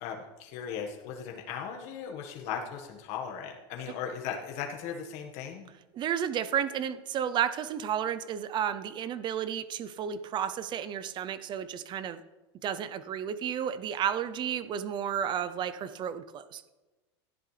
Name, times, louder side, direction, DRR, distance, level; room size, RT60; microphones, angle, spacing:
voice 1, 0.0-5.7, left 7 dB, 55° left, 1 dB, 1.5 m, -37 dB
voice 2, 5.9-12.2 12.6-16.6, right 9 dB, 35° right, 13 dB, 0.6 m, -32 dB
17.0 x 11.5 x 3.3 m, 1.2 s
supercardioid pair, 135°, 14 cm